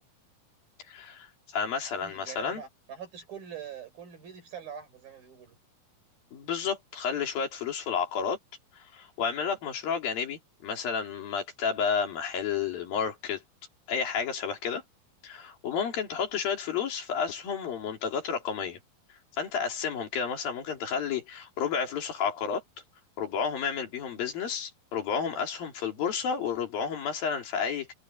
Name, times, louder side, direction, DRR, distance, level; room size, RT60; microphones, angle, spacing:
voice 1, 0.9-1.3 1.5-2.6 6.3-8.4 8.7-13.4 13.9-14.8 15.2-18.8 19.4-22.6 23.2-27.9, left 6 dB, 85° left, 5.0 m, -31 dB
voice 2, 2.0-5.6, right 8 dB, 90° right, 7.9 m, -43 dB
omnidirectional pair, 4.0 m